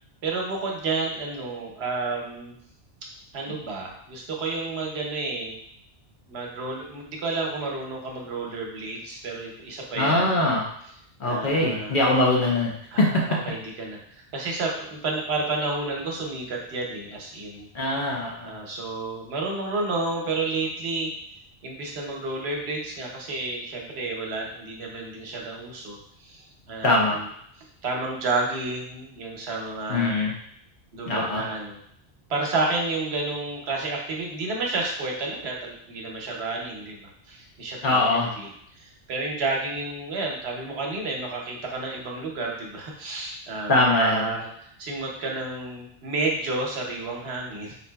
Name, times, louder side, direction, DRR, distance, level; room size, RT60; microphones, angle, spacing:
voice 1, 0.2-2.5 3.3-5.6 6.3-10.4 11.2-12.0 12.9-14.0 14.3-17.7 18.4-21.1 21.6-27.2 27.8-30.3 30.9-31.8 32.3-38.5 38.8-47.8, right 3 dB, 75° right, 0 dB, 0.9 m, -30 dB
voice 2, 10.0-10.6 11.2-12.7 13.0-13.2 17.7-18.5 26.8-27.2 29.9-30.3 31.1-31.4 37.8-38.3 43.7-44.3, left 2 dB, 55° left, -2 dB, 0.8 m, -22 dB
3.9 x 2.7 x 2.2 m, 0.69 s
omnidirectional pair, 1.1 m